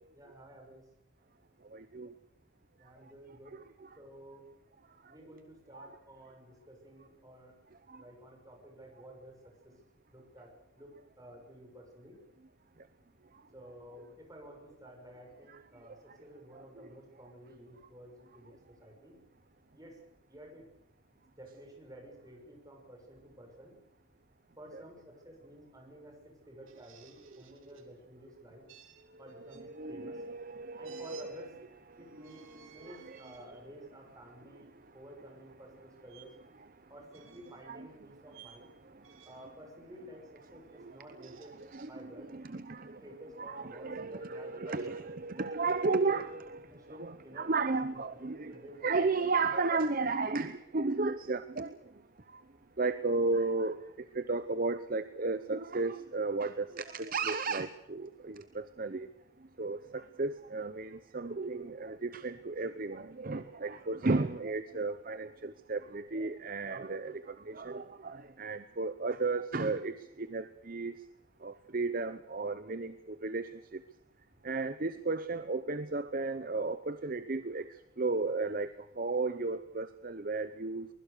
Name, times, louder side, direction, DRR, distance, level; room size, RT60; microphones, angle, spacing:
voice 1, 0.1-0.8 2.8-3.6 4.0-4.5 5.1-7.6 8.0-9.4 9.6-9.7 10.1-10.5 10.8-12.2 13.5-19.2 19.7-20.0 20.3-20.6 21.4-23.7 24.6-28.6 29.2-30.2 30.8-31.5 32.0-32.4 32.7-34.7 34.9-36.3 36.9-38.7 39.2-41.5 41.8-42.3 43.0-45.5 46.0-48.1 48.5-49.4, right 1 dB, 15° right, 1 dB, 6.3 m, -52 dB
voice 2, 1.7-2.1 3.5-3.9 5.0-5.1 5.7-5.9 7.9-8.0 15.5-15.6 16.5-16.9 24.7-24.8 27.3-27.4 29.3-31.5 31.9-33.3 37.6-37.9 38.8-39.2 40.7-41.3 41.7-43.0 43.4-51.8 52.3-52.4 52.8-59.1 59.6-71.0 71.4-73.8 74.4-80.9, right 3 dB, 40° right, 12 dB, 0.7 m, -34 dB
sound 1, 26.7-27.9 28.7-29.6 30.8-31.3 32.1-33.5 34.1-34.3 36.1-36.3 37.1-37.7 38.3-38.6 39.0-39.5 41.0-41.9, right 9 dB, 70° right, 3.6 m, -57 dB
23.5 x 21.0 x 6.7 m, 0.84 s
head